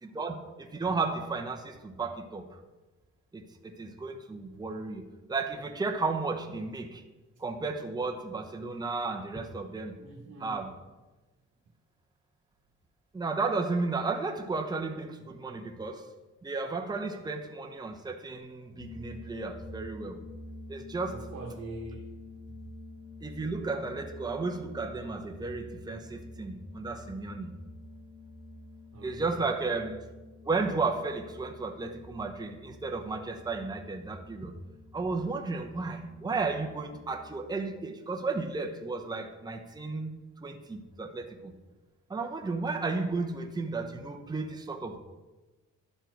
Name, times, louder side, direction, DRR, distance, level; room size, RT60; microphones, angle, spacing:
voice 1, 0.0-2.6 3.3-5.0 5.3-7.0 7.4-9.9 10.4-10.8 13.1-16.1 16.4-20.2 20.7-21.3 23.2-27.5 29.0-30.0 30.4-34.6 34.9-40.1 40.4-41.5 42.1-45.0, right 3 dB, 15° right, 3 dB, 0.8 m, -33 dB
voice 2, 10.0-10.6 21.1-22.2 28.9-29.4, right 2 dB, 60° right, -2 dB, 1.3 m, -43 dB
sound 1, 18.8-37.5, left 2 dB, 75° left, 1.7 m, -48 dB
12.0 x 4.4 x 4.6 m, 1.2 s
cardioid pair, 90°, 30 cm